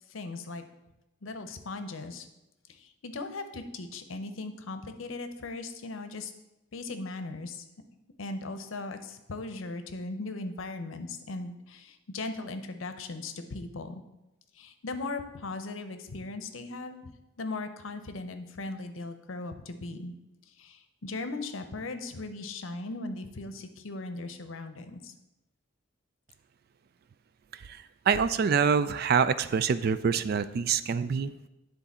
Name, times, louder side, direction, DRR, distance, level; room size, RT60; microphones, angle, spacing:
voice 1, 0.1-0.6 1.2-2.3 2.7-6.3 6.7-7.7 8.2-14.0 14.5-17.1 17.4-20.1 20.5-25.1, left 3 dB, 80° left, 8 dB, 0.7 m, -38 dB
voice 2, 28.1-31.3, right 6 dB, 50° right, 14 dB, 0.3 m, -25 dB
9.7 x 3.9 x 4.2 m, 0.96 s
head